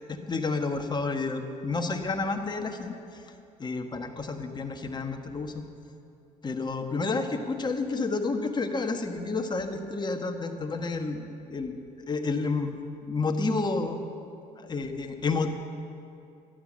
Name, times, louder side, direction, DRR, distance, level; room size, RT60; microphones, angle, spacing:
voice 1, 0.0-2.9 3.6-5.6 6.4-11.8 12.1-12.8 13.0-14.0 14.6-15.5, left 3 dB, 25° left, 5 dB, 1.3 m, -30 dB
12.0 x 9.2 x 7.4 m, 2.6 s
supercardioid pair, 85°, 17 cm